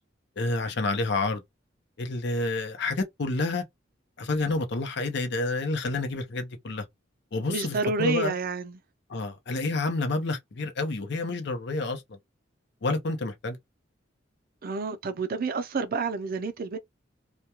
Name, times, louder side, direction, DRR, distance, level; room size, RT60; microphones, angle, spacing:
voice 1, 0.4-1.4 2.0-3.6 4.2-6.9 7.3-8.3 9.1-12.2 12.8-13.6, left 2 dB, 65° left, 0.6 m, -29 dB
voice 2, 7.5-8.8 14.6-16.8, right 4 dB, 50° right, 0.5 m, -29 dB
2.2 x 2.2 x 2.8 m
head